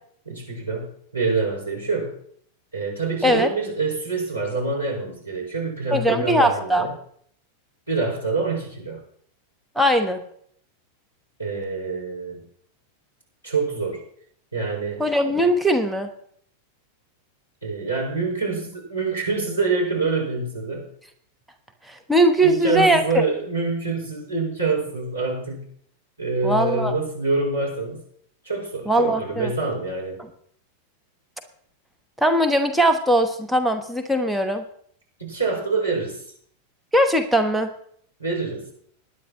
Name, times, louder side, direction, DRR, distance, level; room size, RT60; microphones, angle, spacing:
voice 1, 0.3-2.2 2.7-6.9 7.9-9.0 11.4-12.4 13.4-14.0 14.5-15.0 17.6-20.9 22.4-25.7 26.2-28.0 28.4-30.2 35.2-36.2 38.2-38.7, right 3 dB, 90° right, -4 dB, 5.5 m, -26 dB
voice 2, 5.9-6.9 9.7-10.2 15.0-16.1 21.9-23.2 26.4-26.9 28.9-29.5 32.2-34.6 36.9-37.7, right 1 dB, ahead, 4 dB, 1.2 m, -20 dB
20.0 x 10.0 x 3.0 m, 0.63 s
figure-of-eight pair, 90°, 0 cm